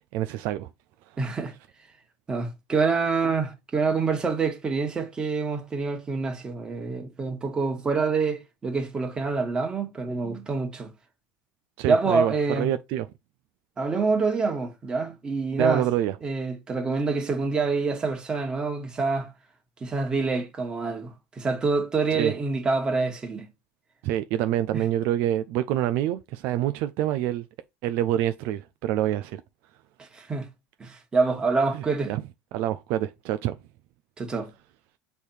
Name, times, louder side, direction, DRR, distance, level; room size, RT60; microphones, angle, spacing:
voice 1, 0.1-0.7 11.8-13.1 15.6-16.2 22.1-22.3 24.0-27.5 27.8-29.4 31.7-32.2 32.5-33.6, right 12 dB, 65° right, 0.4 m, -26 dB
voice 2, 1.2-1.5 2.3-10.9 11.9-12.7 13.8-15.9 16.2-19.3 19.8-23.5 24.7-24.8 30.0-30.5 30.8-32.2 34.2-34.5, right 4 dB, 20° right, 1.6 m, -26 dB
6.4 x 3.5 x 4.4 m
supercardioid pair, 125°, 4 cm